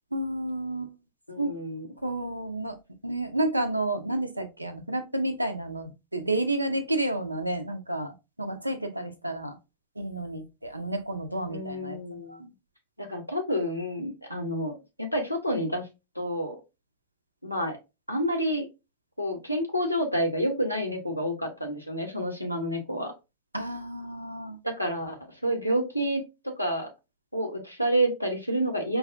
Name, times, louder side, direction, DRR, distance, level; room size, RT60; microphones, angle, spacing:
voice 1, 0.1-1.0 1.4-1.5 2.0-2.8 3.0-9.6 10.0-12.0 12.3-12.4 23.5-24.6, right 1 dB, 85° right, 0.5 m, -30 dB
voice 2, 1.3-1.9 11.5-12.5 13.0-15.9 16.2-16.6 17.4-17.8 18.1-18.7 19.2-23.1 24.6-26.9 27.3-29.0, equal, 90° left, 0.7 m, -29 dB
4.7 x 2.3 x 2.4 m
figure-of-eight pair, 90°, 0 cm